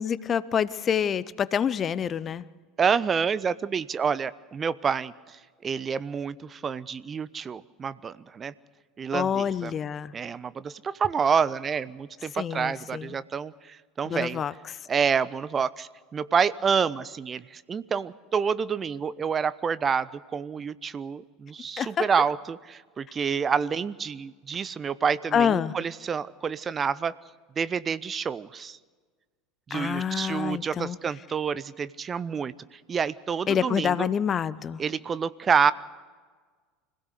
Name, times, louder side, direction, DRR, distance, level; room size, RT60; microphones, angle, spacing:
voice 1, 0.0-2.5 9.1-10.1 12.3-13.1 14.1-14.5 21.8-22.1 25.3-25.7 29.7-31.0 33.5-34.8, left 8 dB, 30° left, 18 dB, 0.7 m, -27 dB
voice 2, 2.8-8.5 9.0-9.7 10.1-14.4 14.9-27.1 27.6-28.8 29.7-34.1 34.8-35.7, right 6 dB, 25° right, 18 dB, 0.5 m, -28 dB
25.5 x 16.5 x 6.6 m, 1.5 s
figure-of-eight pair, 75°, 0 cm